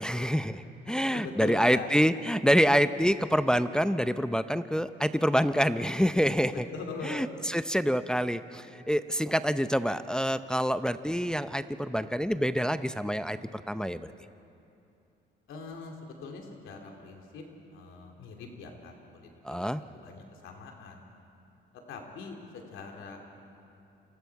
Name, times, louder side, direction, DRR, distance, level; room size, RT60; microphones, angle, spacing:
voice 1, 0.0-6.5 7.0-13.4 13.7-14.1 19.4-19.8, equal, 5° left, 11 dB, 0.6 m, -26 dB
voice 2, 1.0-1.9 6.5-7.3 15.5-21.0 21.7-23.2, left 4 dB, 85° left, 2 dB, 2.8 m, -42 dB
28.5 x 22.0 x 4.7 m, 2.7 s
cardioid pair, 90°, 20 cm